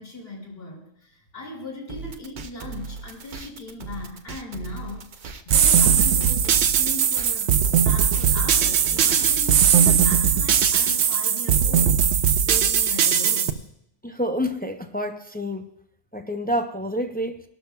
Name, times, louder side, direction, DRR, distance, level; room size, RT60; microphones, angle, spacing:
voice 1, 0.0-5.1 5.4-7.5 7.8-13.6, left 2 dB, 60° left, -2 dB, 3.1 m, -38 dB
sound 1, 1.9-9.6, right 5 dB, 50° right, 0.8 m, -38 dB
sound 2, 5.5-13.5, right 8 dB, 80° right, 0.9 m, -19 dB
voice 2, 14.0-15.7 16.1-17.4, equal, 15° left, 6 dB, 0.3 m, -28 dB
21.0 x 12.0 x 2.2 m, 0.73 s
omnidirectional pair, 1.1 m